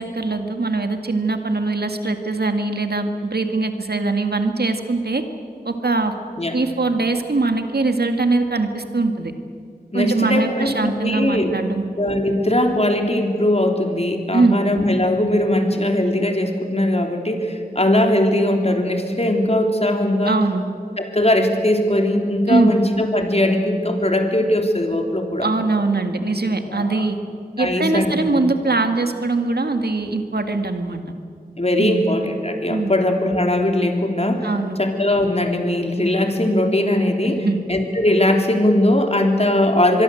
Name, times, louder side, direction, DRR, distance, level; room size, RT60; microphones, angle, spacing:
voice 1, 0.0-5.2 5.7-6.1 6.5-9.3 9.9-11.8 14.3-14.6 20.2-20.6 22.5-22.8 25.4-27.2 27.6-31.0 31.8-32.1 32.7-32.9 34.4-34.8 37.2-37.6, right 3 dB, 80° right, 6 dB, 2.1 m, -21 dB
voice 2, 9.9-11.5 12.0-20.4 21.0-25.5 26.7-27.1 27.6-28.3 31.6-34.5 34.8-40.0, left 1 dB, 40° left, 3 dB, 3.5 m, -20 dB
25.0 x 22.5 x 7.9 m, 2.4 s
wide cardioid pair, 50°, 16 cm